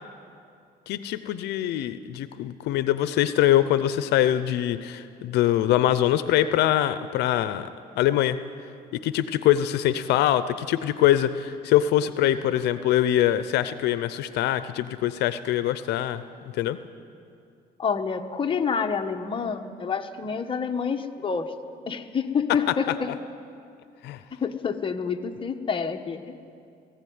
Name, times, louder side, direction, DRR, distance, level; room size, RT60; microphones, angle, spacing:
voice 1, 0.9-7.7 8.0-8.4 9.0-16.2 16.5-16.8 24.0-24.2, left 12 dB, 80° left, 13 dB, 0.7 m, -23 dB
voice 2, 17.8-21.5 21.9-23.1 24.3-26.4, left 6 dB, 30° left, 5 dB, 1.2 m, -28 dB
19.0 x 15.5 x 9.5 m, 2.4 s
cardioid pair, 110°, 17 cm